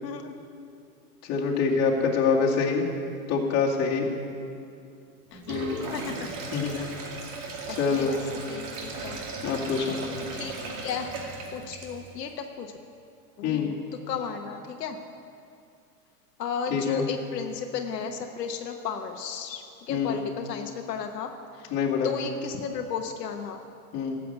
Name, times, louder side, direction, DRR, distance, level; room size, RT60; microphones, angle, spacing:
voice 1, 0.0-0.3 5.3-6.3 6.7-6.9 7.6-8.2 8.5-9.2 10.3-10.5 10.8-11.1 11.5-12.7 13.4-13.8 14.1-15.0 16.4-21.7 22.0-23.6, left 6 dB, 85° left, 4 dB, 1.1 m, -34 dB
voice 2, 1.2-2.9 3.3-4.1 5.5-5.9 6.5-6.8 7.8-8.1 9.4-10.0 13.4-13.7 16.7-17.0 19.9-20.2 21.7-22.1 23.9-24.2, left 5 dB, 35° left, -3 dB, 2.4 m, -25 dB
Sink (filling or washing), 5.3-12.2, right 3 dB, 45° right, 2.4 m, -37 dB
13.0 x 7.6 x 8.0 m, 2.5 s
hypercardioid pair, 120°, 47 cm